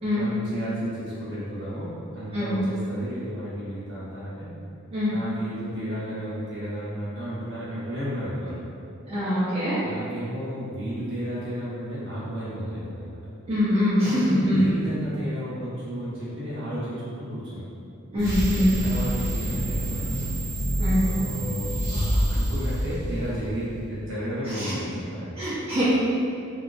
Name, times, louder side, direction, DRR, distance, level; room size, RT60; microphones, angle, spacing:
voice 1, 0.1-4.5 5.1-8.6 9.8-13.2 14.0-17.6 18.5-20.2 21.0-25.4, equal, 60° right, -10 dB, 1.0 m, -33 dB
voice 2, 9.1-9.8 13.5-14.6 18.1-18.7 20.8-21.0 24.4-24.7 25.4-25.8, left 1 dB, 30° right, -13 dB, 0.6 m, -23 dB
sound 1, 18.2-23.6, right 1 dB, 60° left, 1.0 m, -27 dB
2.8 x 2.4 x 2.4 m, 2.5 s
head